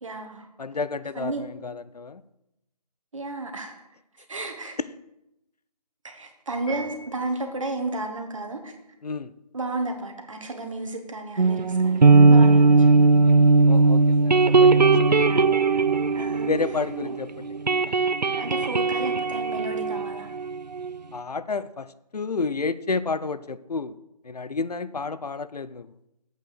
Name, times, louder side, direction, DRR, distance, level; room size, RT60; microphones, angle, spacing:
voice 1, 0.0-0.5 1.1-1.5 3.1-3.8 4.3-4.8 6.0-8.7 9.5-12.8 16.1-16.5 17.0-17.2 18.3-20.3, right 2 dB, 50° right, 5 dB, 1.6 m, -33 dB
voice 2, 0.6-2.2 9.0-9.3 13.6-15.2 16.5-17.5 17.9-18.0 21.1-21.9 22.1-23.9 24.2-25.9, left 4 dB, 70° left, 15 dB, 0.6 m, -30 dB
Piano, 6.7-7.6, right 3 dB, 15° left, 2.9 m, -40 dB
sound 1, 11.4-17.2 17.4-20.9, right 3 dB, 85° right, 0.6 m, -18 dB
8.2 x 6.4 x 6.5 m, 0.87 s
figure-of-eight pair, 160°, 21 cm